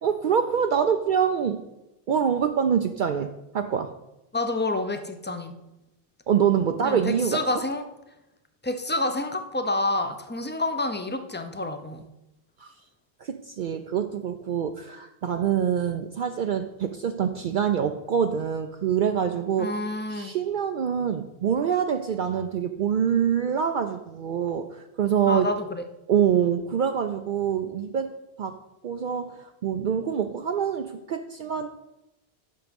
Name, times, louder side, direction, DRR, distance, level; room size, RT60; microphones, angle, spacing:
voice 1, 0.0-1.6 2.1-3.9 6.3-7.4 12.6-12.7 13.2-19.8 20.1-25.5 26.1-28.1 28.4-28.6 28.8-31.7, right 8 dB, 60° right, 7 dB, 0.6 m, -25 dB
voice 2, 4.3-5.5 6.8-7.8 8.6-12.0 19.6-20.3 25.3-25.8, left 2 dB, 15° left, 7 dB, 0.5 m, -28 dB
8.5 x 6.1 x 5.3 m, 0.93 s
omnidirectional pair, 1.1 m